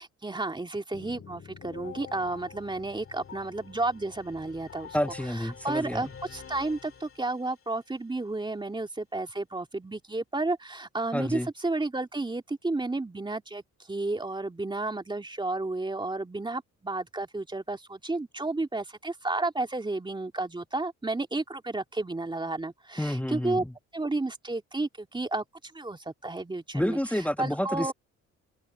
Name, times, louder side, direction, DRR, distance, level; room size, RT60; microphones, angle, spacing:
voice 1, 0.0-5.0 5.3-23.6 23.9-27.0 27.4-27.9, right 2 dB, 15° right, 2.6 m, -32 dB
sound 1, 0.9-7.7, left 7 dB, 45° left, 2.2 m, -47 dB
voice 2, 4.9-6.1 11.1-11.5 23.0-23.7 26.7-27.9, equal, 5° left, 1.3 m, -29 dB
cardioid pair, 90°, 30 cm